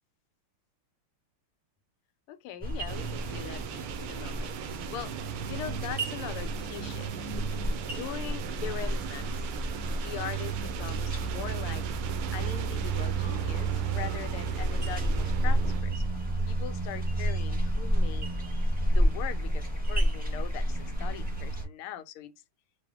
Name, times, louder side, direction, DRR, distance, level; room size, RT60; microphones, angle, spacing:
voice 1, 2.3-4.6 4.9-5.1 5.5-7.1 7.8-9.5 9.9-11.8 12.3-16.1 16.5-18.3 18.9-22.3, left 11 dB, 80° left, 1.5 m, -41 dB
sound 1, 2.6-21.7, right 1 dB, 5° right, 1.3 m, -30 dB
sound 2, 2.9-15.8, right 10 dB, 80° right, 1.5 m, -40 dB
4.9 x 2.5 x 3.5 m
omnidirectional pair, 2.4 m